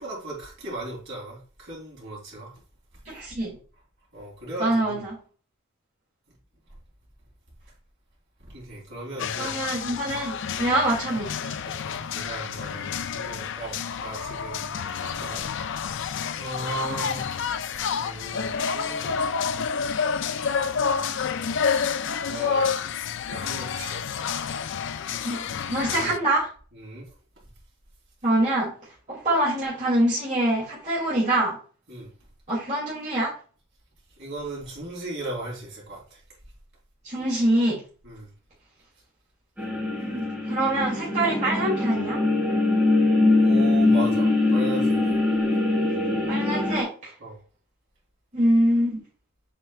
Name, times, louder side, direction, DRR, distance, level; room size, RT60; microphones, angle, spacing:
voice 1, 0.0-2.5 4.1-5.0 8.4-9.6 11.1-11.2 11.6-16.0 16.3-17.4 17.9-19.2 20.7-21.2 22.3-22.7 23.3-24.1 26.0-26.1 26.7-27.1 31.9-32.1 34.2-36.2 38.0-38.3 43.4-45.2 47.2-47.4, right 2 dB, 55° right, 3.5 m, -37 dB
voice 2, 3.1-3.6 4.6-5.1 9.4-11.5 16.8-17.0 25.2-26.5 28.2-28.7 29.1-31.6 32.5-33.3 37.0-37.8 39.9-42.2 46.3-47.1 48.3-49.0, right 1 dB, 30° right, 2.5 m, -25 dB
sound 1, 9.2-26.2, left 6 dB, 55° left, 0.4 m, -29 dB
sound 2, 39.6-46.8, left 2 dB, 5° right, 2.1 m, -22 dB
7.5 x 5.4 x 2.4 m
head